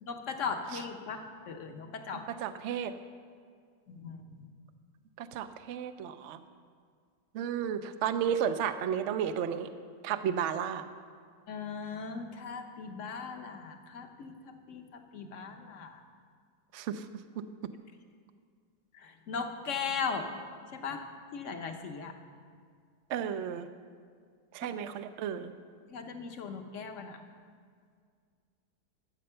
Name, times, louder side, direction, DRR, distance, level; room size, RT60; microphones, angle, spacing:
voice 1, 0.0-2.3 3.9-4.2 11.5-16.0 18.9-20.3 20.7-21.1 21.3-22.1 24.6-24.7 25.9-27.2, left 5 dB, 55° left, 5 dB, 1.0 m, -38 dB
voice 2, 2.3-2.9 5.2-6.4 7.3-9.7 10.0-10.8 16.7-17.1 23.1-23.7 24.5-25.5, right 8 dB, 80° right, 10 dB, 0.6 m, -33 dB
13.0 x 7.6 x 5.6 m, 2.1 s
omnidirectional pair, 1.9 m